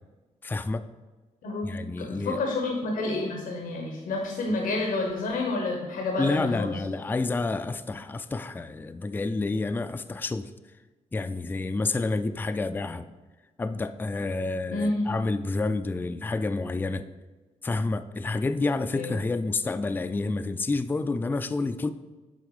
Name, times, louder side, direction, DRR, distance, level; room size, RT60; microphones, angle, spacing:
voice 1, 0.4-0.8 1.6-2.4 6.2-10.5 11.1-13.1 13.6-17.1 17.6-21.9, left 3 dB, 15° left, 11 dB, 0.3 m, -29 dB
voice 2, 1.4-6.7 14.7-15.1 18.9-19.1, left 2 dB, 85° left, 1 dB, 1.0 m, -29 dB
8.0 x 3.5 x 4.8 m, 1.2 s
cardioid pair, 85°, 14 cm